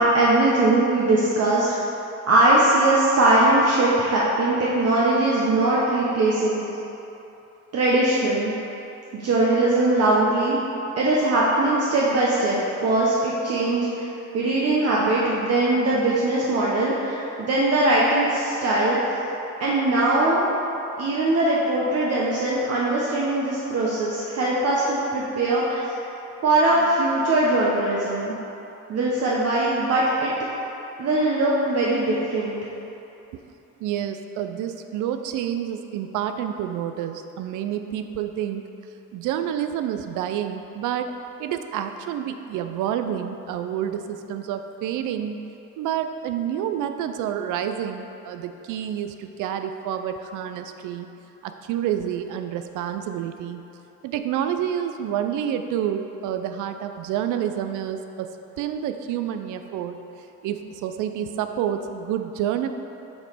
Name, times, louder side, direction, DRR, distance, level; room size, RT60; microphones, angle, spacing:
voice 1, 0.0-1.7 2.3-6.6 7.7-8.5 9.1-10.6 11.0-14.1 14.3-19.0 19.6-20.4 21.0-25.8 26.4-28.3 28.9-30.5 31.0-32.6, right 2 dB, 55° right, -6 dB, 0.9 m, -21 dB
voice 2, 33.8-38.6 39.1-41.1 41.4-45.4 45.8-51.1 51.4-53.6 54.0-60.0 60.4-62.7, right 10 dB, 85° right, 8 dB, 0.4 m, -28 dB
7.1 x 3.1 x 5.1 m, 2.9 s
cardioid pair, 90°, 30 cm